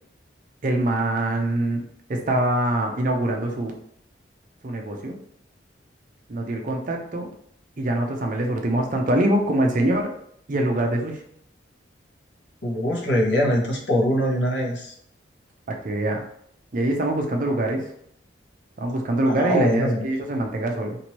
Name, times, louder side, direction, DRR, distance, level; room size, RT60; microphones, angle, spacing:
voice 1, 0.6-1.8 2.1-3.8 4.6-5.2 6.3-7.3 7.8-10.1 10.5-11.2 15.7-16.2 16.7-17.9 18.8-21.0, right 1 dB, 45° right, 2 dB, 0.5 m, -24 dB
voice 2, 12.6-14.9 19.3-20.1, equal, 70° left, -1 dB, 0.8 m, -23 dB
2.9 x 2.5 x 3.0 m, 0.68 s
head